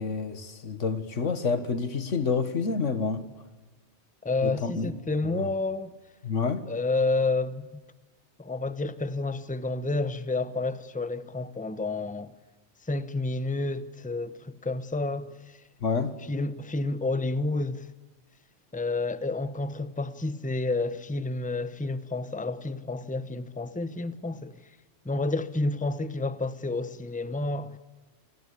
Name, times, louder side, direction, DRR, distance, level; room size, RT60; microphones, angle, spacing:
voice 1, 0.0-3.3 4.4-4.9 5.2-5.5 6.2-6.7 15.8-16.2, left 5 dB, 85° left, 2.0 m, -28 dB
voice 2, 4.2-5.9 6.7-7.8 8.4-12.3 12.9-15.3 16.3-17.9 18.7-24.5 25.0-27.8, left 3 dB, 5° left, 0.9 m, -30 dB
29.0 x 20.0 x 8.4 m
omnidirectional pair, 1.2 m